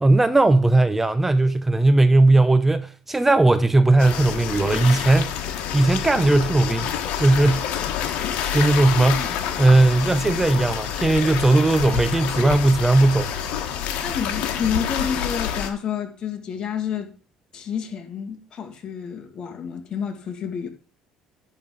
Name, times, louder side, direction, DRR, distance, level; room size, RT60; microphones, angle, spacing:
voice 1, 0.0-6.9 7.2-7.7 8.0-8.2 8.5-9.3 9.6-13.3, right 2 dB, 10° right, 0.5 m, -18 dB
sound 1, 4.0-15.7, left 9 dB, 75° left, 1.5 m, -28 dB
voice 2, 14.0-17.1 17.5-20.7, left 7 dB, 45° left, 1.9 m, -29 dB
10.5 x 3.7 x 7.5 m
cardioid pair, 115°, 2 cm